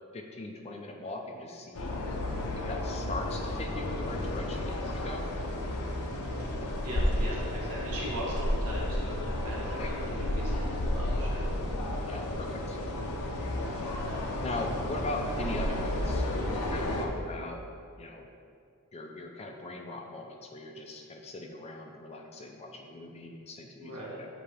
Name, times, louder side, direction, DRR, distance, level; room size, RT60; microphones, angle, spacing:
voice 1, 0.1-1.9 2.5-5.3 9.8-10.1 12.0-12.8 14.4-17.6 18.0-18.3 18.9-24.3, left 2 dB, 30° left, 2 dB, 0.4 m, -40 dB
sound 1, 1.7-17.1, left 1 dB, 75° left, 0.7 m, -32 dB
voice 2, 6.8-11.4 23.8-24.2, equal, 85° right, -5 dB, 1.4 m, -39 dB
7.4 x 2.8 x 4.9 m, 2.3 s
head